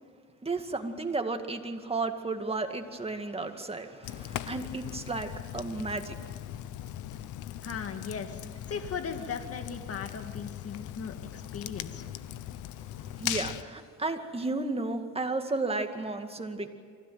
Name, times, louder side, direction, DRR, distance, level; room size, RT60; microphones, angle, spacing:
voice 1, 0.4-6.1 13.1-16.7, right 3 dB, 20° right, 5 dB, 2.2 m, -33 dB
Fire, 4.0-13.6, left 12 dB, 85° left, 0.9 m, -39 dB
voice 2, 7.6-12.1, left 6 dB, 50° left, 6 dB, 2.0 m, -38 dB
25.0 x 16.0 x 9.4 m, 2.1 s
cardioid pair, 90°, 30 cm